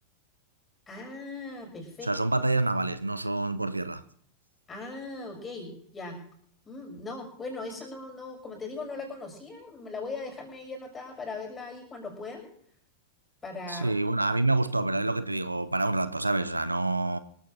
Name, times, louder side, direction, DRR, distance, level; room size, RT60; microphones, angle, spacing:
voice 1, 0.9-2.1 4.7-6.2 6.6-12.5 13.4-13.9, left 3 dB, 20° left, 6.2 m, -39 dB
voice 2, 2.0-4.0 13.7-17.2, right 2 dB, 85° right, 0.7 m, -27 dB
25.5 x 15.0 x 2.7 m
figure-of-eight pair, 90°, 0 cm